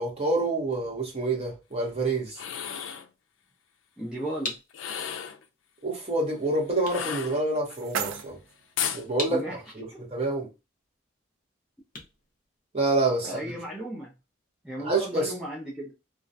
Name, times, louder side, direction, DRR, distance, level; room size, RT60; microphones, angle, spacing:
voice 1, 0.0-2.4 5.8-8.4 8.9-9.4 9.8-10.5 12.7-13.3 14.8-15.3, right 2 dB, 30° right, 0.7 m, -27 dB
sound 1, 2.3-3.1 4.7-5.4 6.9-7.8 8.8-9.1, left 8 dB, 85° left, 0.4 m, -33 dB
voice 2, 4.0-4.5 9.3-9.6 9.9-10.0 13.2-14.1 14.6-15.9, right 1 dB, 5° right, 0.4 m, -34 dB
sound 2, 4.4-13.2, left 2 dB, 45° left, 0.6 m, -43 dB
sound 3, 7.2-9.2, right 7 dB, 90° right, 0.4 m, -37 dB
2.3 x 2.1 x 2.5 m
head